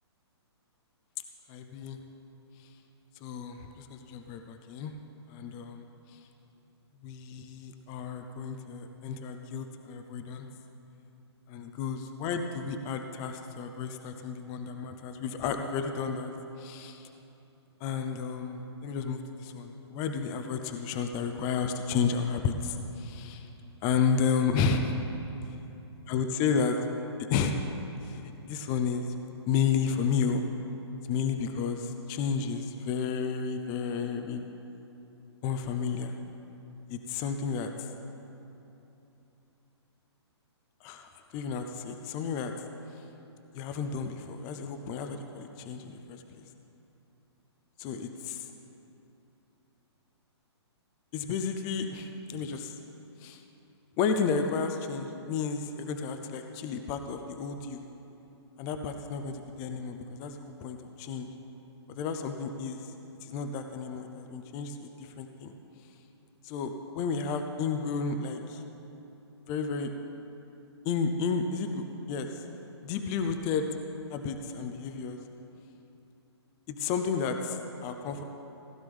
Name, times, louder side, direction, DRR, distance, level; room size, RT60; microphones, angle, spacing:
voice 1, 1.5-2.0 3.2-4.9 5.3-6.2 7.0-10.5 11.5-16.3 16.6-17.1 17.8-23.5 23.8-25.0 26.1-26.7 27.3-27.6 28.0-29.0 29.5-30.5 31.0-34.4 35.4-36.2 36.9-37.9 40.8-42.5 43.5-46.4 47.8-48.5 51.1-52.8 53.2-53.4 54.0-57.8 58.6-61.3 61.9-62.8 63.2-65.5 66.4-68.6 69.5-69.9 70.8-72.4 72.8-73.7 74.1-75.2 76.7-78.2, left 6 dB, 25° left, 6 dB, 0.6 m, -32 dB
16.0 x 11.0 x 3.6 m, 3.0 s
hypercardioid pair, 145°, 14 cm